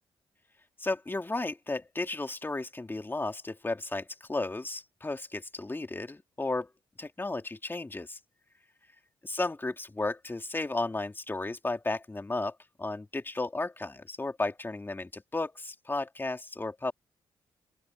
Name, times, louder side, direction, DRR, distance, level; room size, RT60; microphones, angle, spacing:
voice 1, 0.8-6.7 7.0-8.2 9.2-16.9, left 2 dB, 20° left, 2.7 m, -34 dB
open air
cardioid pair, 75°, 10 cm